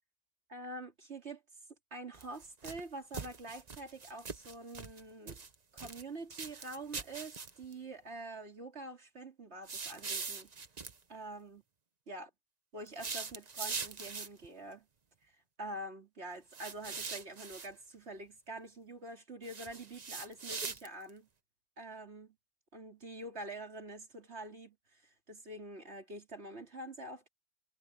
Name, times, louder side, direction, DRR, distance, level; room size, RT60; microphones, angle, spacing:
voice 1, 0.5-1.4 1.9-5.4 5.7-10.5 11.1-11.6 12.1-12.3 12.7-14.9 15.6-21.3 21.8-22.3 22.7-27.3, right 2 dB, 65° right, 3.2 m, -46 dB
sound 1, 2.1-2.8 3.1-5.0 5.3-6.0 6.3-7.7 9.7-11.0 12.9-14.5 16.5-17.7 19.4-21.1, right 5 dB, 35° right, 1.0 m, -42 dB
omnidirectional pair, 1.2 m